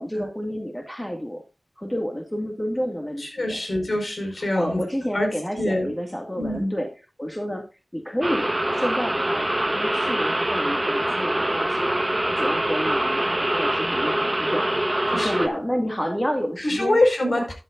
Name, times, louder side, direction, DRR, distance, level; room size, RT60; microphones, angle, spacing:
voice 1, 0.0-1.4 1.8-3.6 4.5-6.9 7.2-7.7 7.9-12.0 12.4-17.0 17.3-17.5, equal, 10° left, 3 dB, 1.9 m, -30 dB
voice 2, 3.2-4.8 5.1-5.3 5.5-5.9 6.4-6.7 15.1-15.6 16.6-17.5, left 1 dB, 60° left, 3 dB, 4.8 m, -24 dB
sound 1, 8.2-15.5, right 1 dB, 20° right, 1.3 m, -24 dB
13.0 x 10.5 x 2.5 m, 0.28 s
wide cardioid pair, 65°, 0 cm